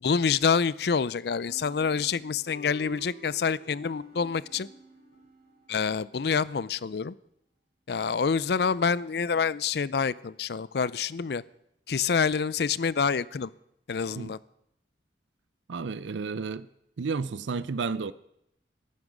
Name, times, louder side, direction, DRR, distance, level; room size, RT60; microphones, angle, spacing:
voice 1, 0.0-4.7 5.7-7.1 7.9-11.4 11.9-13.5 13.9-14.4, left 5 dB, 60° left, 0.5 m, -27 dB
sound 1, 1.5-6.1, equal, 75° left, 7.7 m, -50 dB
voice 2, 15.7-16.7 17.0-18.1, right 4 dB, 90° right, 0.5 m, -31 dB
14.0 x 13.0 x 6.2 m
head